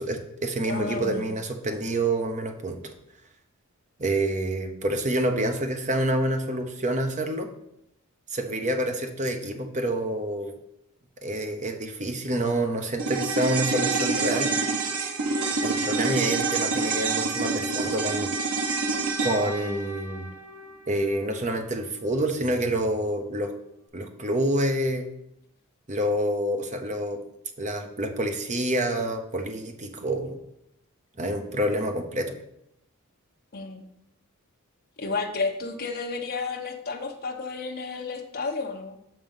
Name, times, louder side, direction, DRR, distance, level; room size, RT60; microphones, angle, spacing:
voice 1, 0.0-2.9 4.0-7.5 8.3-10.5 11.2-14.5 15.6-18.3 19.2-20.3 20.9-23.5 23.9-25.1 25.9-27.2 27.6-30.4 31.2-32.3, right 1 dB, 35° right, 5 dB, 0.8 m, -27 dB
voice 2, 0.7-1.2 33.5-33.8 35.0-38.9, left 4 dB, 45° left, 2 dB, 0.9 m, -31 dB
sound 1, 13.0-21.5 21.8-21.9, right 3 dB, 75° right, 1.0 m, -27 dB
6.0 x 5.4 x 5.5 m, 0.78 s
head